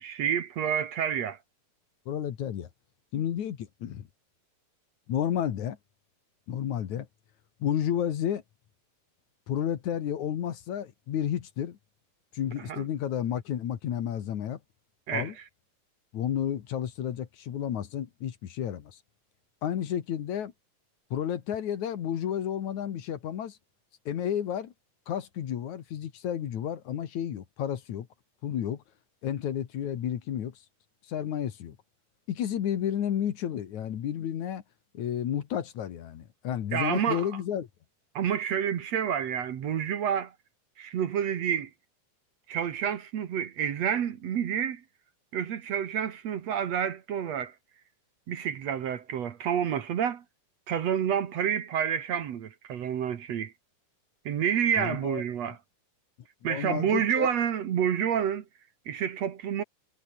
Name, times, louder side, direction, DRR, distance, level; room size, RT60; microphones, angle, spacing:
voice 1, 0.0-1.4 12.7-12.8 15.1-15.3 36.7-37.3 38.2-40.3 40.8-41.7 42.5-44.8 45.3-47.5 48.3-50.2 50.7-53.5 54.3-55.6 56.4-58.4 58.9-59.6, right 8 dB, 60° right, 2.5 m, -29 dB
voice 2, 2.1-2.7 3.1-4.0 5.1-5.8 6.5-7.1 7.6-8.4 9.5-11.8 12.3-14.6 15.1-15.3 16.1-19.0 19.6-20.5 21.1-23.6 24.1-24.7 25.1-28.1 28.4-28.8 29.2-30.5 31.1-31.8 32.3-34.6 34.9-37.7 54.8-55.2 56.5-57.3, left 9 dB, 65° left, 3.0 m, -31 dB
omnidirectional pair, 3.7 m